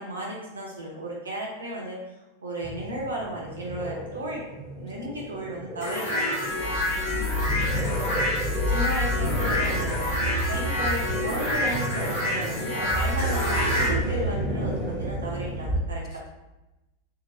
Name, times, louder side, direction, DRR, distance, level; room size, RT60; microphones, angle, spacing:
voice 1, 0.0-2.0 2.4-4.4 4.8-6.3 8.7-10.0 10.5-16.2, right 1 dB, 70° right, -3 dB, 0.5 m, -34 dB
sound 1, 2.6-15.8, equal, 5° left, 0.7 m, -30 dB
sound 2, 5.8-13.9, left 1 dB, 55° left, 0.9 m, -28 dB
voice 2, 6.7-8.0 16.1-16.3, left 4 dB, 35° left, 3 dB, 0.4 m, -49 dB
2.7 x 2.1 x 2.8 m, 0.99 s
figure-of-eight pair, 90°, 0 cm